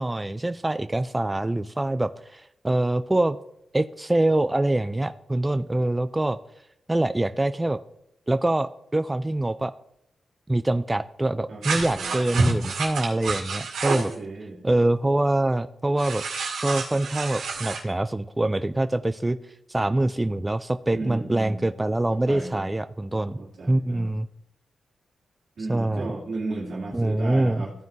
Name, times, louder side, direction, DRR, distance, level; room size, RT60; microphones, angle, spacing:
voice 1, 0.0-3.4 3.7-6.4 6.9-7.8 8.3-9.7 10.5-14.1 14.6-16.2 16.6-19.4 19.7-23.4 23.7-24.3 25.7-26.1 26.9-27.6, right 1 dB, 15° right, 11 dB, 0.3 m, -24 dB
sound 1, 11.6-14.1 16.0-17.8, right 4 dB, 90° right, 2.1 m, -29 dB
voice 2, 12.0-12.5 14.1-14.6 20.9-21.6 22.1-22.6 23.4-24.1 25.6-27.7, right 3 dB, 65° right, -4 dB, 2.3 m, -34 dB
14.5 x 5.5 x 2.6 m, 0.81 s
cardioid pair, 75°, 0 cm